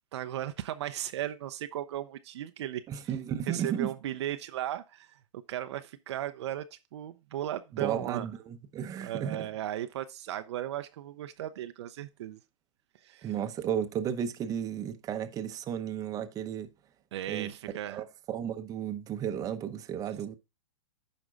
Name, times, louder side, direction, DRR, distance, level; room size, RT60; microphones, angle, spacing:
voice 1, 0.1-2.8 3.5-5.2 5.5-8.3 9.0-12.4 13.0-13.3 17.1-18.0, right 12 dB, 60° right, 0.6 m, -36 dB
voice 2, 2.9-3.9 7.7-9.5 13.2-16.7 17.3-20.3, right 9 dB, 20° right, 0.8 m, -34 dB
14.0 x 5.2 x 2.4 m
hypercardioid pair, 125°, 16 cm